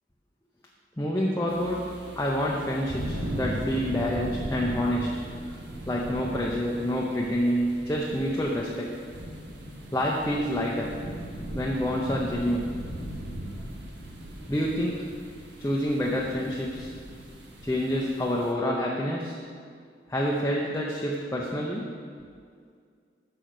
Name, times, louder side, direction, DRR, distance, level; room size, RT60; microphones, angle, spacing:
voice 1, 1.0-1.9 2.1-5.2 5.9-9.0 9.9-11.0 11.5-12.8 14.5-15.1 15.6-16.9 17.6-19.4 20.1-21.9, equal, 15° left, -3 dB, 0.6 m, -27 dB
sound 1, 1.5-18.5, right 1 dB, 75° right, 1.1 m, -38 dB
6.8 x 6.0 x 6.5 m, 2.1 s
head